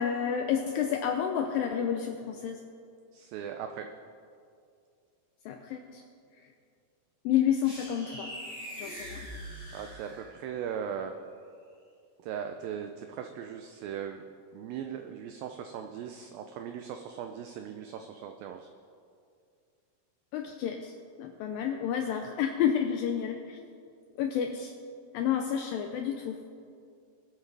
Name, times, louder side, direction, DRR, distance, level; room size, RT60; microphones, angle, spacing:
voice 1, 0.0-2.6 5.5-6.0 7.3-8.3 8.8-9.3 20.3-23.6 24.2-24.7 25.1-26.4, left 8 dB, 80° left, 4 dB, 2.1 m, -30 dB
voice 2, 3.1-3.9 9.7-11.1 12.2-14.2 14.5-18.7, right 8 dB, 85° right, 6 dB, 2.0 m, -39 dB
sound 1, 7.6-10.5, equal, 15° right, 3.5 m, -42 dB
23.0 x 8.3 x 3.4 m, 2.3 s
omnidirectional pair, 4.7 m